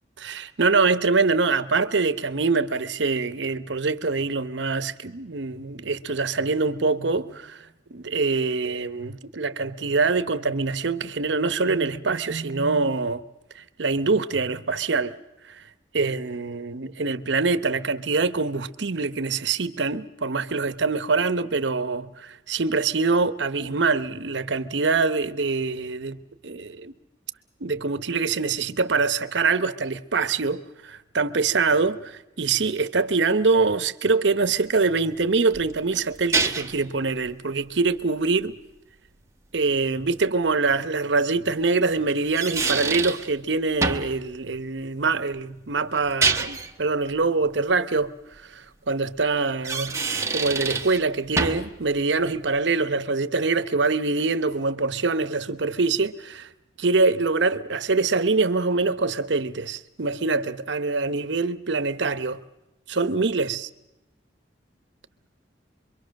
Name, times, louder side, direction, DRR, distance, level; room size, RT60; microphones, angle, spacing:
voice 1, 0.2-7.6 7.9-13.2 13.5-15.1 15.5-15.6 15.9-26.2 26.4-26.9 27.6-38.6 39.5-48.1 48.4-50.0 50.3-56.5 56.8-62.4 62.9-63.7, right 4 dB, 75° right, 0.9 m, -24 dB
sound 1, 35.5-36.8 40.1-40.2 42.1-43.3 43.8-44.2 46.0-46.7 49.5-51.0 51.4-51.7, right 4 dB, 15° right, 1.0 m, -26 dB
26.0 x 23.0 x 6.4 m
head